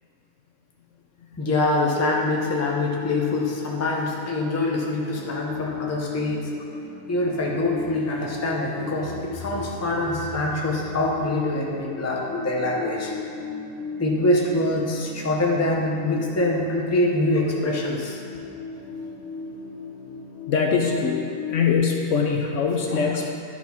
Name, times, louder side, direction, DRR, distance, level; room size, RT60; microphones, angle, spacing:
voice 1, 1.4-6.5 7.1-13.1 14.0-18.2 22.9-23.0, left 2 dB, 15° left, -1 dB, 0.7 m, -24 dB
sound 1, 2.1-21.8, left 4 dB, 40° right, 1.9 m, -37 dB
voice 2, 20.5-21.2 21.5-23.3, left 5 dB, 65° left, 1 dB, 1.0 m, -22 dB
10.5 x 4.2 x 5.8 m, 2.5 s
omnidirectional pair, 1.5 m